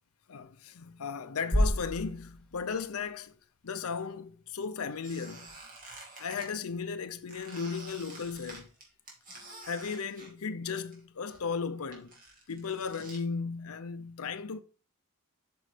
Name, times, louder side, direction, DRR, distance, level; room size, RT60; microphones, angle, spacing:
voice 1, 0.3-3.3 3.6-5.5 6.2-8.7 9.6-12.1 12.5-14.6, left 5 dB, 75° left, 0.6 m, -36 dB
sound 1, 1.5-3.6, equal, 5° left, 1.2 m, -31 dB
Squeak, 5.0-6.5 7.3-11.0 11.3-13.2, right 2 dB, 40° right, 2.6 m, -49 dB
7.9 x 6.1 x 3.3 m
head